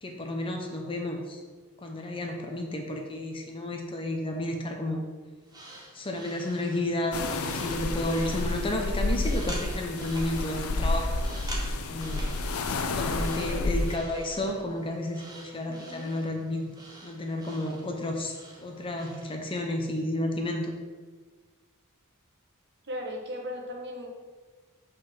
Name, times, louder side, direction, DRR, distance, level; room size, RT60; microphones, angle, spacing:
voice 1, 0.0-1.4 1.8-5.0 5.9-11.5 11.9-12.3 12.9-16.7 17.0-20.7, left 1 dB, 25° left, 2 dB, 0.7 m, -32 dB
sound 1, 5.4-19.3, right 1 dB, 15° right, 1.1 m, -47 dB
sound 2, 7.1-14.0, left 2 dB, 70° left, 0.6 m, -30 dB
voice 2, 13.0-13.6 15.6-16.1 22.8-24.1, equal, 50° right, 0 dB, 1.2 m, -38 dB
5.3 x 4.0 x 5.8 m, 1.4 s
head